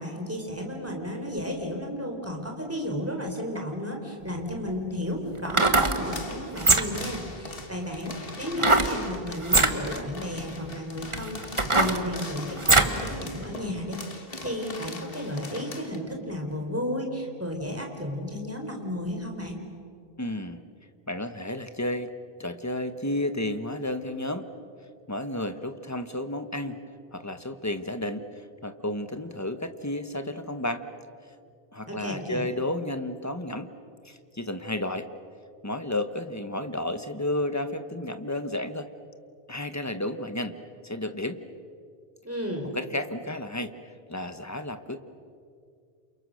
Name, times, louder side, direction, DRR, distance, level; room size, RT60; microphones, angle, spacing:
voice 1, 0.0-19.6 31.9-32.5 42.2-42.7, equal, 15° right, 2 dB, 4.0 m, -33 dB
sound 1, 4.2-4.3 5.4-6.0 6.5-7.1 8.6-8.9 9.4-9.7 10.5-10.6 11.1-13.0 13.4-13.5, right 2 dB, 30° right, 1.5 m, -22 dB
sound 2, 6.0-16.0, left 3 dB, 65° left, 2.1 m, -41 dB
voice 2, 20.2-20.6 21.1-22.1 22.4-24.5 25.1-26.8 27.1-30.8 31.7-33.7 34.0-35.1 35.6-38.9 39.5-40.5 40.8-41.4 42.7-43.7 44.1-45.0, left 1 dB, 15° left, 9 dB, 1.2 m, -32 dB
30.0 x 28.0 x 6.5 m, 2.3 s
omnidirectional pair, 1.0 m